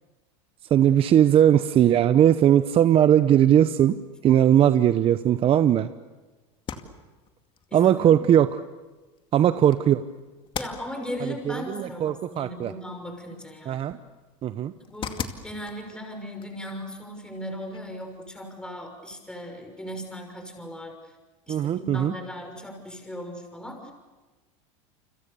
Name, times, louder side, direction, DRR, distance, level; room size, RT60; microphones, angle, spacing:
voice 1, 0.7-4.0 4.2-5.9 7.7-8.6 9.3-10.0 11.2-12.7 13.7-14.0 14.4-14.7 21.5-22.1, right 10 dB, 35° right, 12 dB, 0.8 m, -19 dB
sound 1, 6.5-18.2, left 7 dB, 30° left, 2.3 m, -43 dB
voice 2, 7.7-8.1 10.5-14.0 14.9-21.1 21.5-23.9, equal, 5° left, 3 dB, 6.2 m, -37 dB
30.0 x 26.0 x 7.0 m, 1.2 s
supercardioid pair, 115°, 16 cm